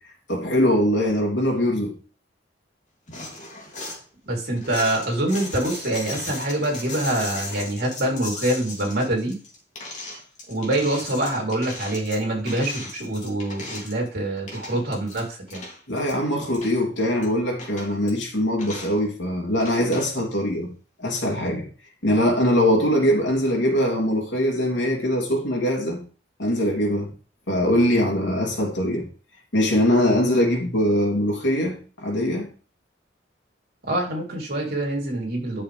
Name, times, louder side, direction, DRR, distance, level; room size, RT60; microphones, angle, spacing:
voice 1, 0.3-1.9 15.9-20.7 21.0-21.7 22.0-26.0 26.4-27.1 27.5-29.1 29.5-32.5, equal, 80° left, 3.1 m, -22 dB
sound 1, 3.1-4.0 4.6-14.1 14.4-15.2 15.5-16.8 17.2-17.3 17.6-18.1 18.6-19.0 19.6-20.1, left 2 dB, 40° left, 2.8 m, -37 dB
voice 2, 4.2-9.4 10.5-15.6 33.9-35.6, right 1 dB, 55° right, 3.6 m, -25 dB
11.0 x 6.5 x 3.5 m
head